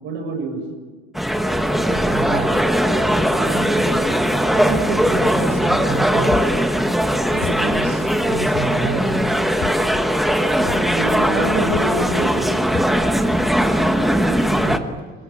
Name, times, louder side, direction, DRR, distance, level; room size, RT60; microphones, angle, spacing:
voice 1, 0.0-0.6 10.9-12.5, right 2 dB, 40° right, 3 dB, 6.8 m, -25 dB
sound 1, 1.1-14.8, equal, ahead, 1.2 m, -19 dB
voice 2, 1.8-2.5 3.3-3.9 4.5-6.5 7.3-9.4 10.6-11.0 14.6-14.8, right 4 dB, 70° right, 2 dB, 4.9 m, -29 dB
sound 2, 6.3-6.7 7.4-7.9 8.5-9.0 9.6-10.0 10.7-11.1 11.7-12.0 12.7-13.1, left 9 dB, 40° left, 1.4 m, -30 dB
26.0 x 22.5 x 8.6 m, 1.4 s
cardioid pair, 160°, 29 cm